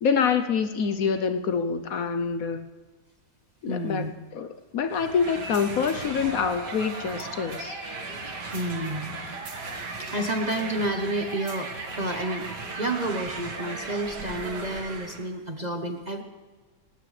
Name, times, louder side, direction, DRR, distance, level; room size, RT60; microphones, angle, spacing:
voice 1, 0.0-2.7 3.6-7.8, left 6 dB, 60° left, 9 dB, 1.1 m, -26 dB
voice 2, 3.7-4.1 8.5-9.2 10.0-12.5 12.7-16.2, right 1 dB, 30° right, 4 dB, 0.9 m, -30 dB
sound 1, 4.9-15.3, right 3 dB, 85° right, 2.4 m, -36 dB
19.0 x 19.0 x 3.3 m, 1.3 s
omnidirectional pair, 1.8 m